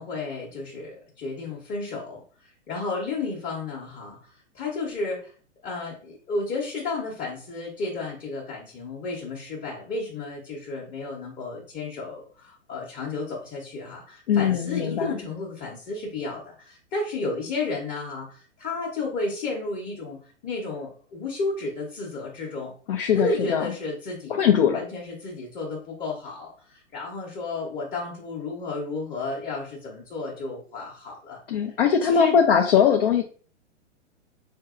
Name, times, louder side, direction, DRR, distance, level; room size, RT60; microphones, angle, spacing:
voice 1, 0.0-5.3 5.6-22.7 23.1-24.5 24.7-31.4 32.0-32.4, left 3 dB, 20° left, -3 dB, 0.9 m, -32 dB
voice 2, 14.3-15.1 22.9-23.7 24.3-24.8 31.5-33.2, left 7 dB, 50° left, 4 dB, 0.5 m, -21 dB
4.3 x 2.6 x 2.5 m, 0.43 s
figure-of-eight pair, 115°, 36 cm